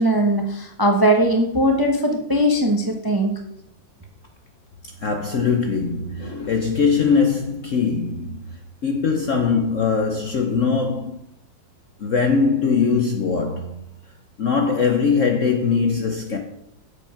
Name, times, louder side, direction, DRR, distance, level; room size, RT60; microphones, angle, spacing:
voice 1, 0.0-3.3, right 1 dB, 15° right, 0.8 m, -19 dB
voice 2, 5.0-8.5 8.8-11.2 12.0-13.8 14.4-16.4, left 5 dB, 55° left, 0.9 m, -21 dB
8.0 x 7.6 x 5.8 m
omnidirectional pair, 2.1 m